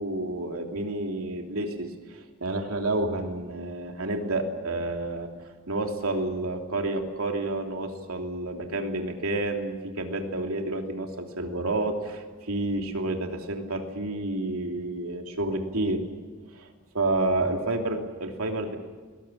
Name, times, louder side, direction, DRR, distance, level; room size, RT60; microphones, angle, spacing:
voice 1, 0.0-5.3 5.7-16.0 16.5-16.7 16.9-18.8, right 2 dB, 85° right, 3 dB, 3.0 m, -29 dB
22.0 x 19.0 x 8.6 m, 1.4 s
head